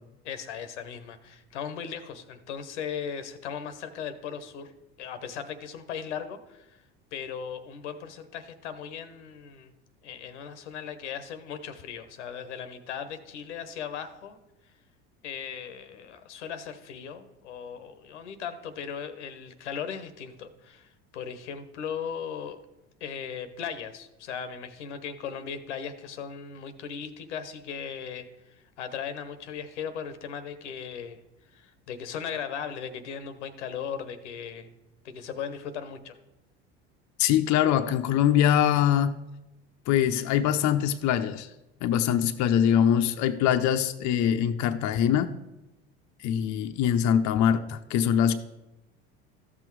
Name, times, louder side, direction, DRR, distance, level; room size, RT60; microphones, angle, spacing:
voice 1, 0.2-4.7 5.0-6.8 7.1-9.7 10.0-14.4 15.2-22.6 23.0-31.2 31.5-34.7 35.0-36.2, left 7 dB, 90° left, 10 dB, 1.0 m, -37 dB
voice 2, 37.2-39.1 39.9-41.5 41.8-45.3 46.2-48.3, left 9 dB, 55° left, 8 dB, 0.7 m, -23 dB
13.5 x 6.1 x 4.6 m, 0.98 s
hypercardioid pair, 80°, 34 cm